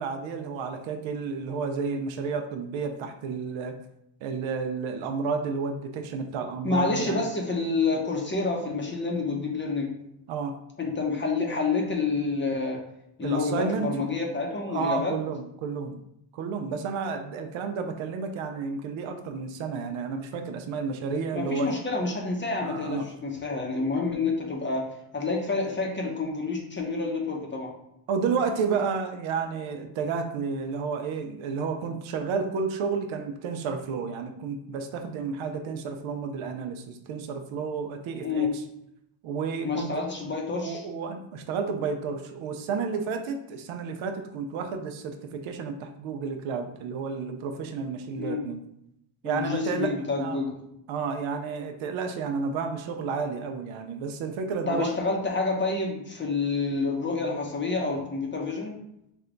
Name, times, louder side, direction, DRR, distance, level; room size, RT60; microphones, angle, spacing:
voice 1, 0.0-3.7 4.2-7.2 10.3-10.6 13.2-13.9 14.7-16.0 16.3-21.8 22.6-23.1 28.1-38.5 39.2-40.0 40.5-48.6 49.2-50.4 50.9-55.0, right 5 dB, 70° right, 5 dB, 0.6 m, -31 dB
voice 2, 6.6-9.9 10.8-12.8 13.2-15.1 21.3-24.8 25.1-27.7 38.2-38.5 39.6-40.8 48.2-48.4 49.2-50.5 54.7-58.7, left 3 dB, 25° left, 0 dB, 0.7 m, -28 dB
3.4 x 2.2 x 3.8 m, 0.79 s
cardioid pair, 110°, 50 cm